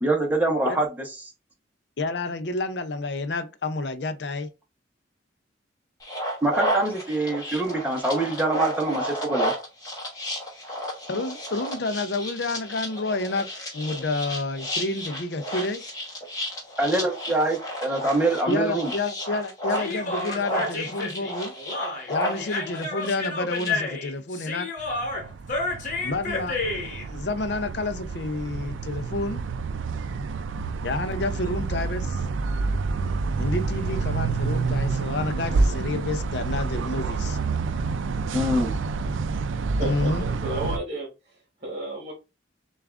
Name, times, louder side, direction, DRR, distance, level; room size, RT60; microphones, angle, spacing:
voice 1, 0.0-0.9 6.4-9.5 16.8-18.9 38.3-38.7, right 2 dB, 10° right, 0.8 m, -24 dB
voice 2, 2.0-4.5 11.1-15.8 18.5-21.5 22.1-24.7 26.0-29.4 30.8-32.2 33.4-37.4 39.8-40.3, left 2 dB, 60° left, 0.5 m, -29 dB
sound 1, 6.0-23.7, equal, 20° left, 1.0 m, -32 dB
Human voice, 19.7-27.1, left 3 dB, 40° left, 1.2 m, -31 dB
sound 2, 24.8-40.8, right 4 dB, 85° right, 0.4 m, -28 dB
voice 3, 39.8-40.1 40.4-42.1, right 2 dB, 40° right, 1.1 m, -32 dB
6.7 x 2.4 x 2.4 m
head